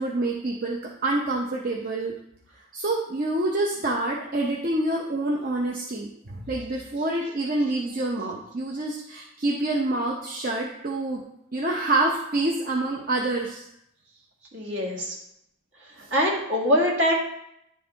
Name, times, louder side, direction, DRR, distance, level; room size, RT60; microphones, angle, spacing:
voice 1, 0.0-2.1 2.7-11.2 11.5-13.6 16.0-16.1, right 2 dB, 45° right, -1 dB, 0.7 m, -27 dB
voice 2, 14.5-15.2 16.1-17.1, equal, 65° right, -1 dB, 1.8 m, -23 dB
10.5 x 3.9 x 3.9 m, 0.78 s
head